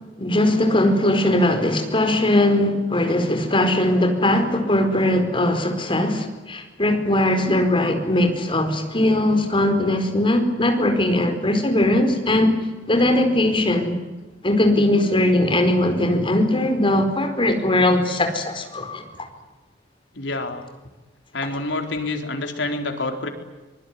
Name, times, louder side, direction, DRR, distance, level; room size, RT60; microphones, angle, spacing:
voice 1, 0.2-12.6 12.9-14.0 14.4-19.0, left 1 dB, 30° left, 6 dB, 4.6 m, -20 dB
voice 2, 20.1-20.6 21.3-23.3, left 2 dB, 90° left, 5 dB, 4.1 m, -27 dB
24.5 x 23.5 x 9.7 m, 1.2 s
head